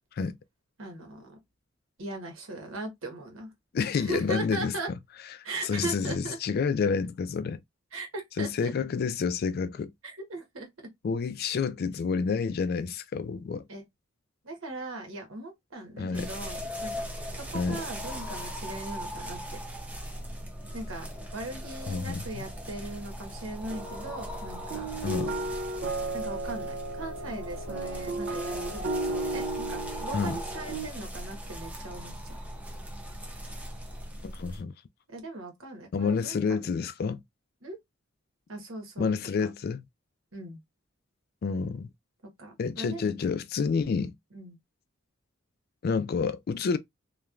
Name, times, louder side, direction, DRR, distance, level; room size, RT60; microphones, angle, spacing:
voice 1, 0.8-1.4 2.0-3.5 3.9-4.9 5.4-6.4 7.9-8.7 10.0-10.9 13.7-13.8 14.4-17.0 17.3-19.4 20.7-21.1 21.3-24.9 26.1-32.4 35.1-36.7 37.6-37.8 38.5-39.1 39.4-39.5 40.3-40.6 42.4-43.1 44.3-44.6, right 2 dB, 85° right, 1.1 m, -39 dB
voice 2, 3.7-4.7 5.6-7.6 8.4-9.9 11.0-13.6 16.0-16.3 17.5-17.8 21.9-22.4 25.0-25.3 30.1-30.4 34.2-34.7 35.9-37.2 39.0-39.8 41.4-41.9 42.6-44.1 45.8-46.8, left 5 dB, 50° left, 0.3 m, -29 dB
sound 1, 16.1-34.6, equal, 10° right, 0.6 m, -39 dB
sound 2, 23.7-30.9, right 2 dB, 60° right, 0.4 m, -34 dB
3.0 x 2.2 x 2.3 m
head